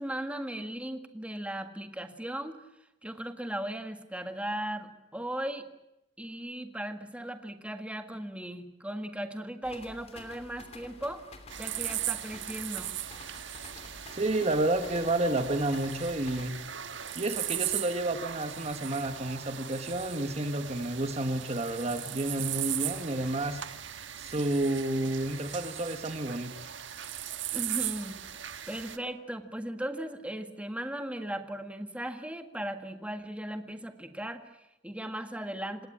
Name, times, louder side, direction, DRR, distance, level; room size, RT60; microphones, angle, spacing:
voice 1, 0.0-2.6 3.0-5.7 6.2-11.3 11.6-12.9 27.5-28.2 28.7-35.9, right 1 dB, 5° right, 6 dB, 1.7 m, -37 dB
sound 1, 9.6-16.7, left 2 dB, 35° left, 2.9 m, -50 dB
sound 2, 11.5-29.0, right 11 dB, 85° right, 1.4 m, -38 dB
voice 2, 14.1-16.6 17.1-23.6 24.2-26.5, right 1 dB, 35° right, 8 dB, 1.4 m, -30 dB
27.0 x 18.0 x 8.7 m, 0.88 s
head